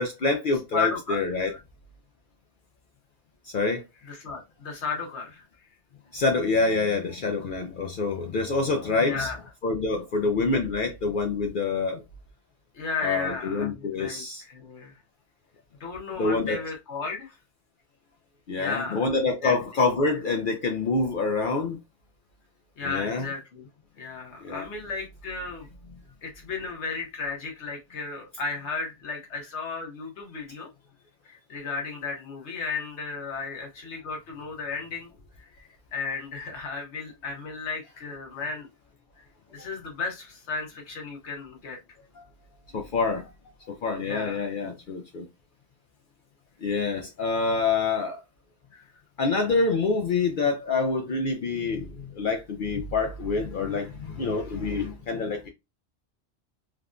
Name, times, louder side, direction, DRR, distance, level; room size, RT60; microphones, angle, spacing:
voice 1, 0.0-1.6 3.5-3.8 6.1-9.3 9.6-12.0 13.0-14.4 16.2-16.6 18.5-21.8 22.8-23.3 24.4-24.7 42.2-42.3 42.7-43.3 43.6-45.3 46.6-48.2 49.2-55.5, left 3 dB, 60° left, 0.6 m, -26 dB
voice 2, 0.7-1.4 4.1-5.4 9.0-9.4 12.7-15.0 15.8-17.3 18.6-19.0 19.4-19.5 22.8-23.7 24.0-25.7 26.2-30.7 31.2-35.1 35.5-38.7 39.5-41.8 44.0-44.4 48.7-48.9, left 4 dB, 85° left, 1.3 m, -34 dB
3.4 x 2.2 x 2.4 m
omnidirectional pair, 1.1 m